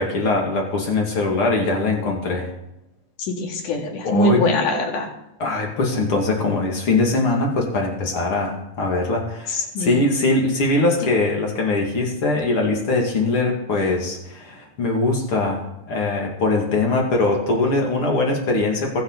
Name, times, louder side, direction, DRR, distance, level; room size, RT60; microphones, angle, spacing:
voice 1, 0.0-2.5 4.0-4.4 5.4-19.0, left 2 dB, 40° left, 0 dB, 2.4 m, -21 dB
voice 2, 3.4-5.1 9.5-9.9, left 1 dB, 55° left, 1 dB, 3.3 m, -22 dB
23.0 x 7.7 x 4.1 m, 0.91 s
omnidirectional pair, 4.7 m